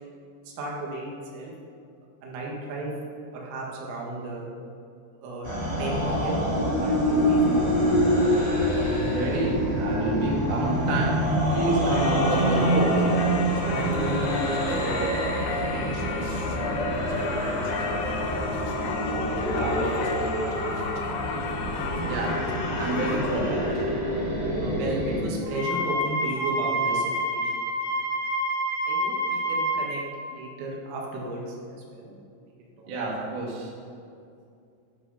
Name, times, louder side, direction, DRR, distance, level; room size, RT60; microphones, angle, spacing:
voice 1, 0.5-1.5 2.2-2.9 3.3-4.5 5.2-5.5 5.8-7.7 13.6-15.1 15.4-18.9 19.5-20.8 21.6-21.8 24.6-27.6 28.8-30.0 30.3-32.2 32.8-32.9, right 2 dB, 85° right, -2 dB, 4.3 m, -35 dB
sound 1, 5.4-25.2, equal, 20° right, 1.0 m, -26 dB
voice 2, 9.0-13.0 22.0-22.3 22.8-23.8 32.9-33.7, right 2 dB, 50° right, -4 dB, 2.9 m, -28 dB
Singing / Church bell, 11.9-23.8, left 5 dB, 85° left, 2.2 m, -33 dB
Wind instrument woodwind instrument, 25.5-30.0, right 1 dB, 60° left, 3.3 m, -27 dB
10.5 x 8.8 x 5.6 m, 2.4 s
omnidirectional pair, 5.7 m